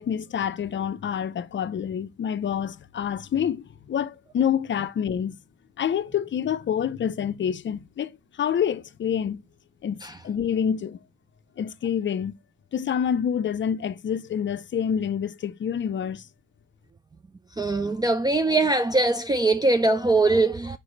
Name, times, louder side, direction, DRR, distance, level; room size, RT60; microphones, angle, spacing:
voice 1, 0.0-5.3 5.8-8.1 8.4-9.4 9.8-11.0 11.6-12.3 12.7-16.2, left 8 dB, 40° left, 0.5 m, -27 dB
voice 2, 17.6-20.8, right 2 dB, 15° right, 0.4 m, -22 dB
5.3 x 4.8 x 3.9 m
cardioid pair, 90°, 30 cm